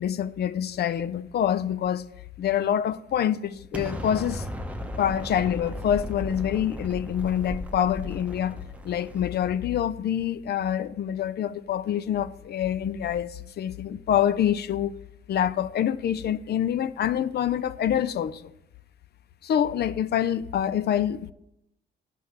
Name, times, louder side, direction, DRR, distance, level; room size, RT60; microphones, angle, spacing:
voice 1, 0.0-2.1 2.4-4.5 5.0-14.9 15.3-18.5 19.4-21.3, left 10 dB, 55° left, 0.5 m, -26 dB
Explosion, 3.7-9.7, equal, 5° right, 0.8 m, -36 dB
14.0 x 5.5 x 3.3 m
cardioid pair, 90°, 20 cm